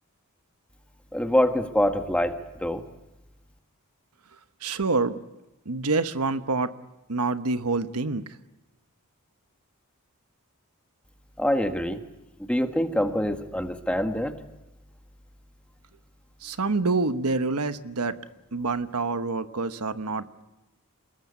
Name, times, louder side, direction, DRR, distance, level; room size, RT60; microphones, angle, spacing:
voice 1, 1.1-2.8 11.4-12.0 12.4-14.3, left 1 dB, 5° left, 6 dB, 1.6 m, -25 dB
voice 2, 4.6-5.2 5.7-6.7 7.1-8.2 16.4-18.2 18.5-20.4, right 3 dB, 80° right, 11 dB, 1.1 m, -27 dB
27.5 x 21.0 x 8.2 m, 0.98 s
head